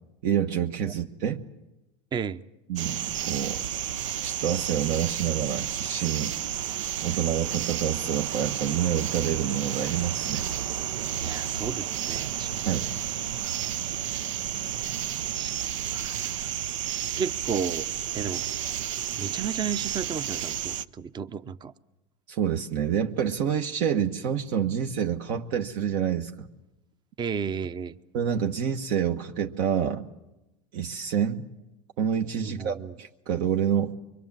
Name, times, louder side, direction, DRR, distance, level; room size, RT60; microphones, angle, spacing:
voice 1, 0.2-1.4 2.7-3.6 4.2-6.3 7.0-10.5 12.7-12.9 22.3-26.5 28.1-30.0 30.7-31.4 32.0-34.0, right 8 dB, 65° right, 1.3 m, -27 dB
voice 2, 2.1-2.4 11.2-12.7 15.4-16.5 17.2-17.9 18.1-18.4 19.2-21.7 27.2-27.9 32.4-32.9, right 6 dB, 30° right, 0.8 m, -33 dB
sound 1, 2.8-20.8, right 10 dB, 85° right, 0.8 m, -31 dB
24.5 x 24.0 x 7.5 m
supercardioid pair, 105°, 15 cm